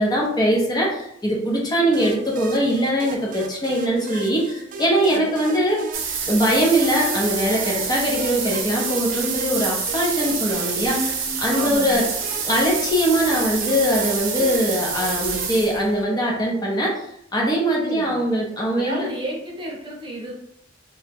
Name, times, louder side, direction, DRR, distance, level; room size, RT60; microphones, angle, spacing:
voice 1, 0.0-5.8 6.3-12.0 12.4-17.1 17.3-19.1, equal, 20° left, -3 dB, 0.6 m, -21 dB
sound 1, 1.9-15.6, right 3 dB, 40° right, 0.3 m, -37 dB
voice 2, 5.1-5.6 11.5-12.1 17.8-18.3 18.7-20.3, right 1 dB, 25° right, -3 dB, 0.7 m, -32 dB
sound 2, 5.9-16.0, right 6 dB, 85° right, 0.6 m, -27 dB
2.8 x 2.1 x 3.4 m, 0.74 s
head